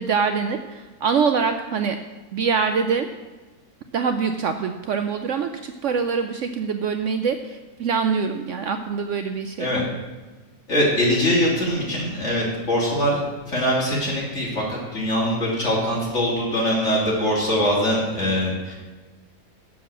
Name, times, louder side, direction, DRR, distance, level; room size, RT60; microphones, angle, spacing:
voice 1, 0.0-2.0 2.3-3.1 3.9-9.7, right 5 dB, 65° right, 7 dB, 0.8 m, -24 dB
voice 2, 10.7-18.7, equal, 50° left, -5 dB, 3.3 m, -22 dB
7.1 x 7.1 x 7.4 m, 1.2 s
omnidirectional pair, 1.6 m